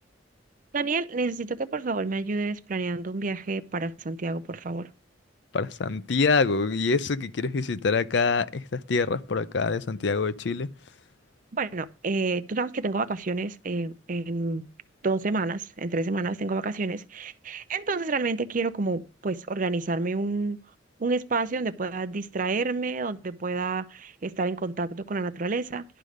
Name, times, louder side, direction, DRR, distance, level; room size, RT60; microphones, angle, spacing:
voice 1, 0.7-4.9 11.5-14.7 15.0-20.6 21.0-25.8, right 3 dB, 45° right, 0.6 m, -29 dB
voice 2, 5.5-10.7, left 4 dB, 65° left, 0.5 m, -25 dB
11.0 x 5.1 x 6.4 m
head